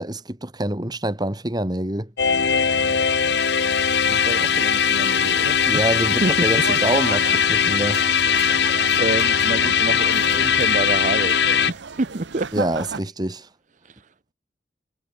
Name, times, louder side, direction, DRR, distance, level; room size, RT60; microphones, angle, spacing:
voice 1, 0.0-2.1 5.7-8.0 12.5-13.5, right 1 dB, 20° right, 2.0 m, -26 dB
sound 1, 2.2-11.7, left 7 dB, 65° left, 1.2 m, -20 dB
voice 2, 4.1-6.0 6.2-6.4 8.3-8.6 9.0-11.4 11.7-12.5 13.8-14.1, right 2 dB, 45° right, 0.8 m, -28 dB
sound 2, 5.9-13.0, right 5 dB, 80° right, 0.9 m, -34 dB
head